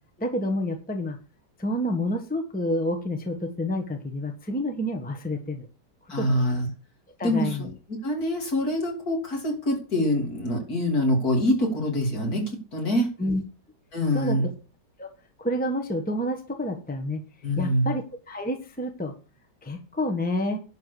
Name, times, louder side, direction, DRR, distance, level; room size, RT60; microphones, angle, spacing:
voice 1, 0.2-1.2 1.6-5.7 6.2-6.5 7.2-7.7 13.2-13.4 14.1-14.5 15.0-15.1 15.4-17.2 17.6-19.1 19.6-20.6, left 1 dB, 5° left, 4 dB, 1.3 m, -29 dB
voice 2, 6.1-6.7 7.2-7.7 8.0-13.1 13.9-14.4 17.4-17.9, equal, 60° left, 1 dB, 3.8 m, -25 dB
11.0 x 4.8 x 7.0 m, 0.34 s
omnidirectional pair, 1.8 m